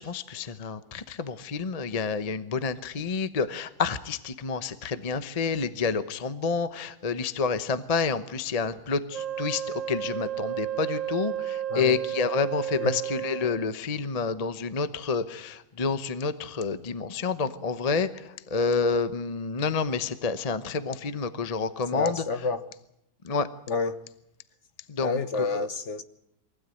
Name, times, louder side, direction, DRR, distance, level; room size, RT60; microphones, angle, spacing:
voice 1, 0.0-22.2 23.2-23.5 24.9-25.7, left 5 dB, 35° left, 0.7 m, -29 dB
Wind instrument woodwind instrument, 9.1-13.7, right 10 dB, 50° right, 1.4 m, -32 dB
voice 2, 21.9-22.7 23.7-24.0 25.0-26.0, left 4 dB, 50° left, 1.1 m, -29 dB
23.5 x 16.0 x 9.2 m
omnidirectional pair, 1.9 m